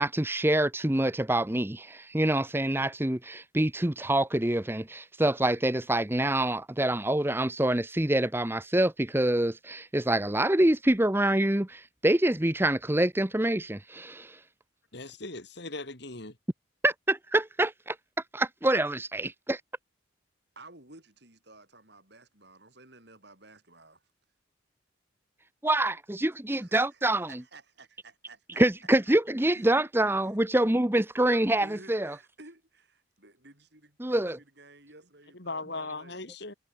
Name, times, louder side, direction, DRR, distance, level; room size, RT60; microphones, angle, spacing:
voice 1, 0.0-14.4 16.8-18.0 18.3-19.6 25.6-27.3 28.6-32.1 34.0-34.4, right 1 dB, 10° right, 0.8 m, -26 dB
voice 2, 14.9-16.4 35.3-36.5, left 3 dB, 55° left, 2.9 m, -38 dB
voice 3, 20.6-24.1 26.5-28.6 29.1-29.2 29.5-29.7 30.2-30.4 31.3-31.4 31.6-36.2, right 2 dB, 55° right, 7.0 m, -53 dB
head